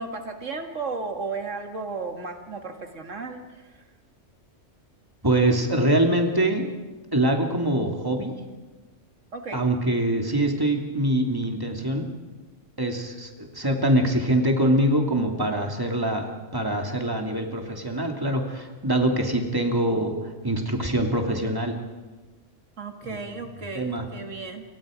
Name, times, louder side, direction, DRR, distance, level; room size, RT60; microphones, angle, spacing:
voice 1, 0.0-3.8 9.3-9.6 22.8-24.6, right 4 dB, 80° right, 5 dB, 2.2 m, -34 dB
voice 2, 5.2-6.7 7.1-8.3 9.5-12.1 12.8-21.7 23.1-23.2 23.7-24.0, right 1 dB, 15° right, 2 dB, 2.7 m, -24 dB
29.0 x 24.5 x 5.1 m, 1.2 s
omnidirectional pair, 1.3 m